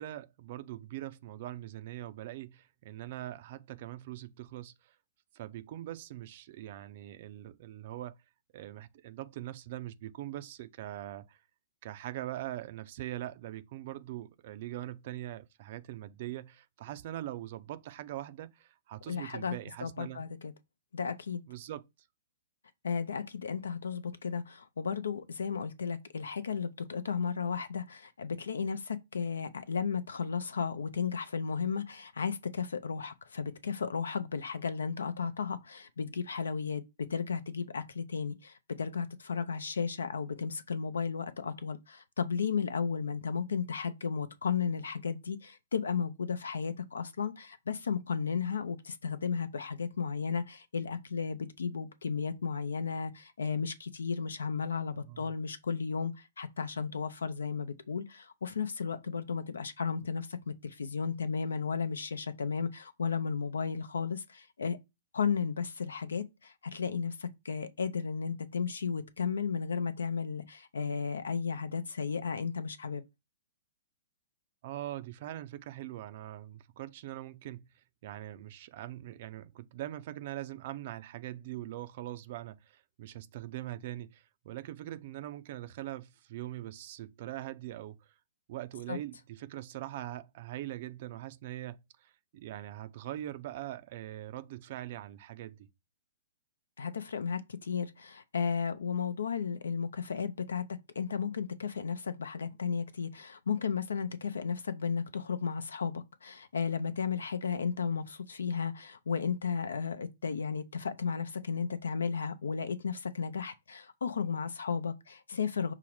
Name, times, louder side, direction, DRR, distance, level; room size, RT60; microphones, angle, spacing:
voice 1, 0.0-5.0 5.3-8.2 8.5-11.4 11.8-20.3 21.5-21.8 55.0-55.3 74.6-77.7 78.0-88.1 88.5-95.7, right 14 dB, 50° right, 0.4 m, -42 dB
voice 2, 19.1-19.5 19.8-20.5 20.9-21.4 22.8-36.8 37.1-64.8 65.1-73.0 88.9-89.0 96.8-100.6 101.0-115.7, left 6 dB, 75° left, 0.5 m, -34 dB
5.7 x 2.0 x 4.5 m
figure-of-eight pair, 115°, 0 cm